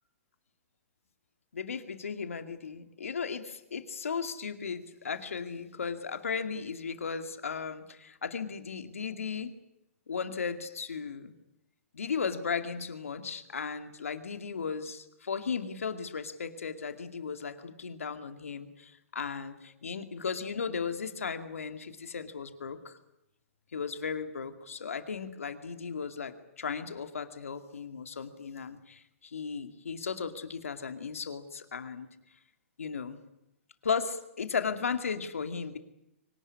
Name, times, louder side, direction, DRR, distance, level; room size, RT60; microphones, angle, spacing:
voice 1, 1.5-9.5 10.1-11.3 11.9-23.0 23.7-32.1 32.8-33.2 33.8-35.8, left 5 dB, 80° left, 8 dB, 2.4 m, -36 dB
24.5 x 18.0 x 9.8 m, 0.85 s
hypercardioid pair, 120°, 7 cm